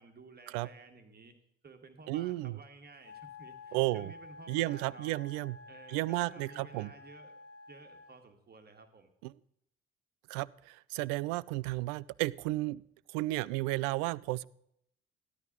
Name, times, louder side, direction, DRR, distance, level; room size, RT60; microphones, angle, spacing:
voice 1, 0.0-1.3 1.6-5.2 5.7-7.4 7.7-9.1, right 3 dB, 30° right, 5 dB, 1.7 m, -54 dB
voice 2, 2.1-2.6 3.7-4.1 4.5-5.6 5.9-6.9 9.2-9.3 10.3-12.8 13.1-14.4, right 19 dB, 60° right, 20 dB, 0.4 m, -33 dB
Wind instrument woodwind instrument, 3.0-8.2, left 3 dB, 45° left, 0.8 m, -51 dB
14.5 x 11.0 x 3.8 m, 0.73 s
figure-of-eight pair, 50°, 32 cm